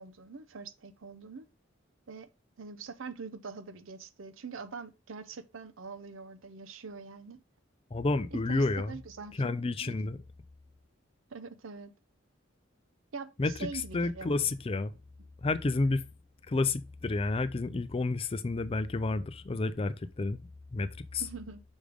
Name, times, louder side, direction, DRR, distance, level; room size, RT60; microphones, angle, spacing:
voice 1, 0.0-1.5 2.1-2.3 2.6-7.4 8.3-9.5 9.8-10.0 11.3-11.9 13.1-14.4 21.2-21.6, right 4 dB, 75° right, 0.7 m, -44 dB
voice 2, 7.9-9.0 9.4-10.2 13.4-13.7 13.9-14.9 15.4-16.0 16.5-21.2, left 3 dB, 30° left, 0.4 m, -30 dB
6.3 x 3.5 x 5.0 m
head